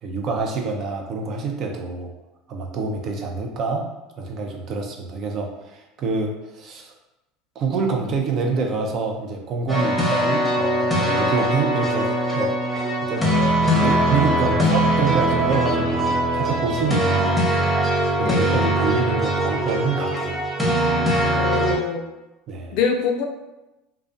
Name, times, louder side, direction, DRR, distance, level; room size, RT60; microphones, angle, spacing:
voice 1, 0.0-2.1 2.5-3.9 4.2-6.9 7.6-12.6 13.0-13.3 13.8-17.4 18.2-20.5 22.5-22.8, right 4 dB, 45° right, 1 dB, 0.5 m, -26 dB
sound 1, 9.7-21.8, right 1 dB, ahead, 0.8 m, -21 dB
voice 2, 18.2-18.8 21.4-22.0 22.7-23.2, left 6 dB, 60° left, 3 dB, 0.4 m, -25 dB
2.3 x 2.2 x 2.5 m, 0.99 s
hypercardioid pair, 80°, 0 cm